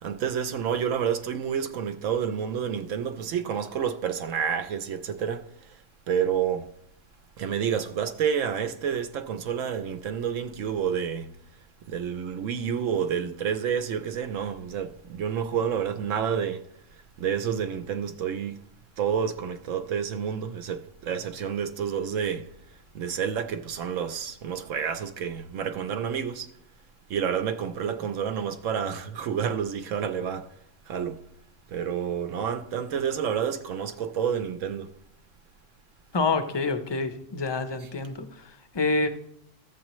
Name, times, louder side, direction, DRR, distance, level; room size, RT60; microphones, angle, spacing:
voice 1, 0.0-5.8 6.1-6.7 7.4-11.3 11.9-16.6 17.2-18.6 19.0-22.5 22.9-26.5 27.1-30.5 30.9-31.2 31.7-34.9, right 8 dB, 80° right, 1.0 m, -29 dB
voice 2, 36.1-39.1, left 3 dB, 30° left, 0.5 m, -27 dB
14.5 x 7.3 x 3.0 m
omnidirectional pair, 1.3 m